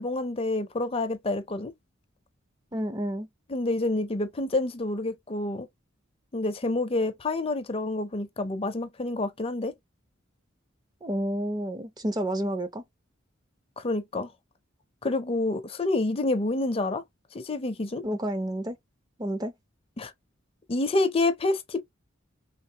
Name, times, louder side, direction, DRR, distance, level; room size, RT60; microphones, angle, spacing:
voice 1, 0.0-1.7 3.5-5.7 6.3-9.7 13.8-14.3 15.0-17.0 17.3-18.0 20.0-20.1 20.7-21.8, left 2 dB, 30° left, 0.5 m, -28 dB
voice 2, 2.7-3.3 11.0-12.8 18.0-18.8 19.2-19.5, right 1 dB, 20° right, 0.5 m, -30 dB
3.6 x 3.2 x 2.8 m
head